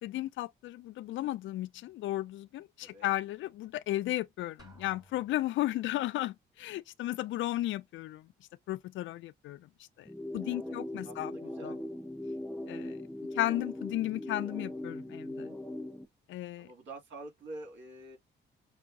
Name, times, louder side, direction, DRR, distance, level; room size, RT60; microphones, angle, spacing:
voice 1, 0.0-8.2 8.7-9.6 10.0-10.1 10.3-11.3 11.6-11.7 12.7-13.0 13.3-15.5 16.3-16.7, left 15 dB, 75° left, 0.4 m, -34 dB
Drum, 4.6-5.8, right 1 dB, 20° right, 1.4 m, -57 dB
sound 1, 10.1-16.1, left 1 dB, 5° left, 0.5 m, -40 dB
voice 2, 10.5-10.8 11.0-11.8 16.6-18.2, right 2 dB, 65° right, 2.3 m, -47 dB
6.0 x 2.1 x 2.5 m
cardioid pair, 90°, 20 cm